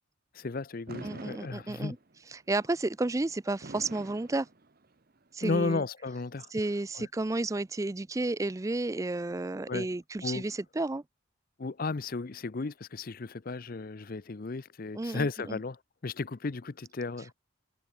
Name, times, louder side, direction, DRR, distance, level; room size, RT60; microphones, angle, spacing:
voice 1, 0.3-2.0 5.4-6.5 6.9-7.1 9.7-9.9 10.2-10.4 11.6-17.3, left 3 dB, 45° left, 0.6 m, -34 dB
Fireworks, 0.9-2.2 3.6-5.2, right 2 dB, 45° right, 1.0 m, -46 dB
voice 2, 1.0-2.0 2.3-4.5 5.3-5.8 6.5-11.0 15.0-15.6, right 2 dB, 15° right, 0.3 m, -32 dB
head